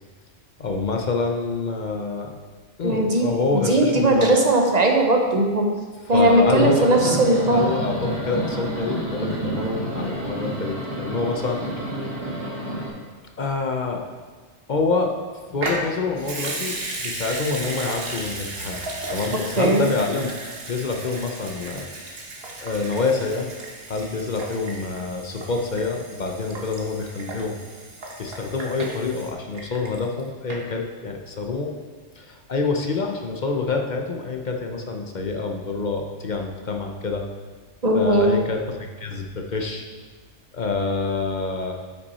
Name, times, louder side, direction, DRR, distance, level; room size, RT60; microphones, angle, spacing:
voice 1, 0.6-2.3 2.8-4.4 6.1-7.0 7.5-12.1 13.4-14.0 14.7-15.1 15.5-16.8 17.0-18.8 19.1-20.3 20.7-22.2 22.6-23.5 23.9-27.6 28.2-31.7 32.2-37.3 37.9-39.9 40.5-41.7, left 3 dB, 45° left, 2 dB, 0.7 m, -27 dB
voice 2, 2.8-5.7 6.1-7.6 19.3-19.8 37.8-38.3, right 1 dB, 40° right, 2 dB, 0.9 m, -19 dB
sound 1, 6.5-12.9, right 1 dB, 20° right, 2.2 m, -29 dB
Water tap faucet / Sink (filling or washing) / Liquid, 15.6-30.2 30.5-30.6, right 2 dB, 55° right, 1.4 m, -35 dB
9.1 x 5.9 x 4.2 m, 1.4 s
omnidirectional pair, 1.2 m